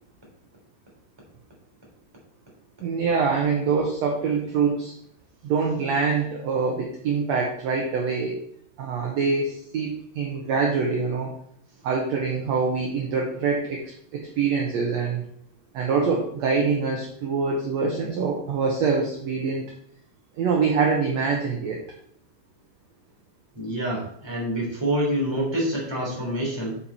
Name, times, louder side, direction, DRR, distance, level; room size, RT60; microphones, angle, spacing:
voice 1, 2.8-4.9 5.4-8.4 8.8-11.3 11.8-15.2 15.7-19.7 20.4-21.8, right 5 dB, 65° right, 0 dB, 1.9 m, -25 dB
voice 2, 23.5-26.8, right 1 dB, 10° right, -3 dB, 2.6 m, -27 dB
7.1 x 7.0 x 4.2 m, 0.66 s
omnidirectional pair, 4.0 m